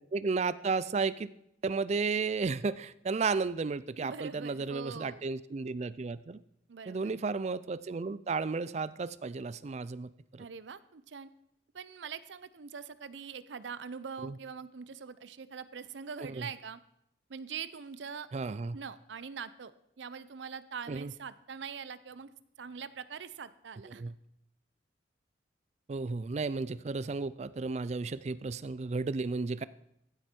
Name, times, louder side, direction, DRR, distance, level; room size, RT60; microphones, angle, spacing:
voice 1, 0.0-1.3 1.6-6.4 6.9-10.4 14.2-14.4 16.2-16.5 18.3-18.8 20.9-21.1 23.9-24.1 25.9-29.6, right 4 dB, 40° right, 17 dB, 0.4 m, -33 dB
voice 2, 4.0-5.2 6.7-7.2 10.4-11.3 11.7-16.8 17.3-18.3 18.7-19.7 20.0-22.3 22.6-24.0, right 6 dB, 85° right, 16 dB, 0.6 m, -43 dB
15.0 x 7.9 x 4.4 m, 0.78 s
head